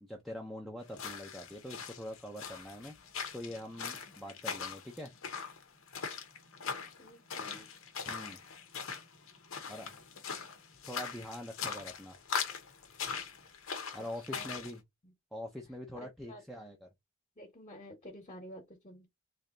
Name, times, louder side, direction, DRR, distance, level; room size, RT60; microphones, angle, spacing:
voice 1, 0.0-2.9 3.3-5.1 8.0-8.4 9.7-10.0 10.9-12.2 13.9-14.8 15.3-16.9, left 1 dB, ahead, 0.6 m, -44 dB
sound 1, 0.9-14.7, left 6 dB, 80° left, 0.9 m, -41 dB
voice 2, 7.0-7.7 14.0-14.5 15.0-15.1 15.9-16.7 17.4-19.1, equal, 30° left, 1.2 m, -51 dB
3.3 x 2.8 x 3.7 m
head